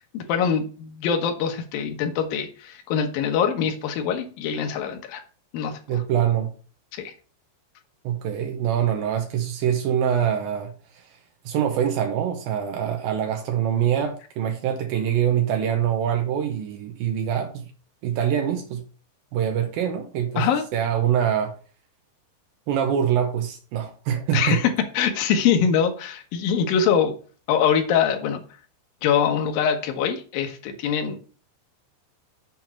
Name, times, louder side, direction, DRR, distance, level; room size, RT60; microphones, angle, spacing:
voice 1, 0.1-5.2 5.5-6.0 6.9-7.1 20.4-20.6 24.3-27.1 27.5-28.4 29.0-31.2, left 7 dB, 70° left, 2.3 m, -23 dB
voice 2, 5.9-6.5 8.0-11.1 11.5-17.6 18.0-18.8 19.3-20.5 20.7-21.5 22.7-24.6, right 9 dB, 90° right, 2.0 m, -24 dB
7.6 x 4.5 x 7.1 m
omnidirectional pair, 5.5 m